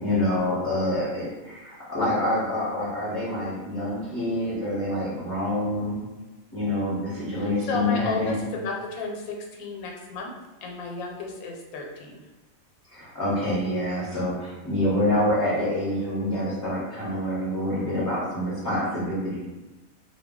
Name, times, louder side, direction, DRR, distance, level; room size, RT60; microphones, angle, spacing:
voice 1, 0.0-6.0 6.5-8.4 12.9-19.5, left 1 dB, 20° left, -10 dB, 0.6 m, -26 dB
voice 2, 7.3-10.3 10.6-12.2, left 3 dB, 85° left, 0 dB, 1.0 m, -33 dB
2.2 x 2.2 x 3.5 m, 1.1 s
omnidirectional pair, 1.4 m